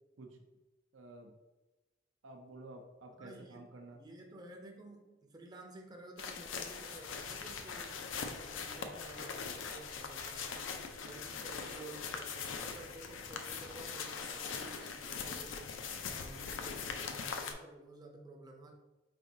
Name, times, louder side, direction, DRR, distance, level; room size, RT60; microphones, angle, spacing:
voice 1, 0.9-1.3 2.2-4.0, right 2 dB, 80° right, 3 dB, 0.6 m, -51 dB
voice 2, 3.2-18.7, right 2 dB, 20° right, 1 dB, 0.5 m, -53 dB
sound 1, 6.2-17.5, left 5 dB, 90° left, 0.5 m, -42 dB
sound 2, 6.9-13.9, equal, 55° right, 1.0 m, -60 dB
4.5 x 3.3 x 2.7 m, 1.1 s
head